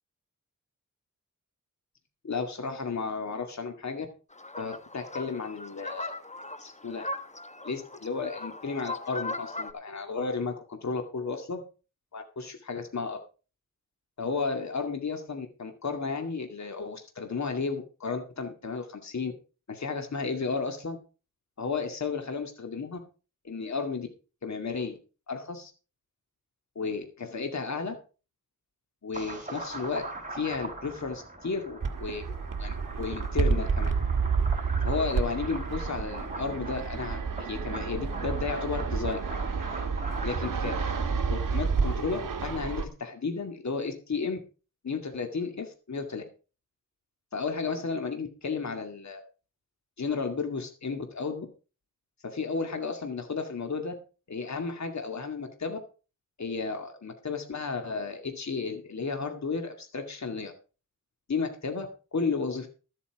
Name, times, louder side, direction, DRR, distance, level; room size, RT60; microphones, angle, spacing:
voice 1, 2.2-4.1 4.6-6.2 6.6-7.1 7.6-11.6 12.1-13.2 14.2-19.3 19.7-21.0 21.6-23.0 23.4-24.1 24.4-25.0 25.3-25.7 26.8-28.0 29.0-30.0 30.3-32.3 32.6-33.9 34.8-39.2 40.2-40.8 41.3-44.4 44.8-46.2 47.3-49.2 50.0-51.5 52.2-53.9 54.3-55.8 56.4-60.5 61.3-61.9 62.1-62.7, left 4 dB, 60° left, 5 dB, 2.3 m, -33 dB
sound 1, 4.3-9.7, left 2 dB, 20° left, 1.3 m, -39 dB
sound 2, 29.1-41.0, right 2 dB, 25° right, 4.7 m, -41 dB
Fixed-wing aircraft airplane, 31.8-42.8, right 5 dB, 80° right, 1.6 m, -30 dB
13.5 x 8.5 x 4.8 m, 0.34 s
wide cardioid pair, 75°, 32 cm